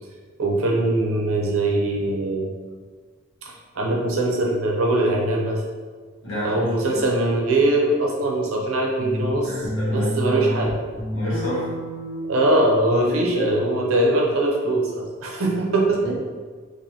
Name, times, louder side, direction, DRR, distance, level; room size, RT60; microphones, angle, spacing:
voice 1, 0.4-2.5 3.4-5.6 6.4-9.5 9.9-10.8 12.2-16.2, right 2 dB, 85° right, -1 dB, 0.7 m, -22 dB
voice 2, 6.2-7.0 9.4-10.4 11.1-11.7 13.0-13.5 16.0-16.2, equal, 60° left, -8 dB, 1.4 m, -29 dB
sound 1, 9.0-10.7 11.0-12.6, left 1 dB, 30° left, 0.9 m, -28 dB
3.8 x 2.6 x 2.8 m, 1.5 s
head